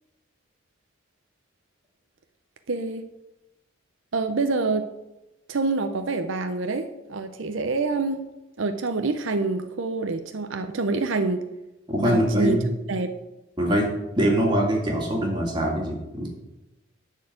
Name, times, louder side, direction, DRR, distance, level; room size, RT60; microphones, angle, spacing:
voice 1, 2.7-3.0 4.1-4.9 5.5-8.2 8.6-11.4 12.0-12.6 12.9-13.2, right 3 dB, 75° right, 8 dB, 0.6 m, -26 dB
voice 2, 11.9-12.6 13.6-13.9 14.1-16.3, equal, 20° right, -1 dB, 2.2 m, -23 dB
10.5 x 4.6 x 7.8 m, 0.97 s
head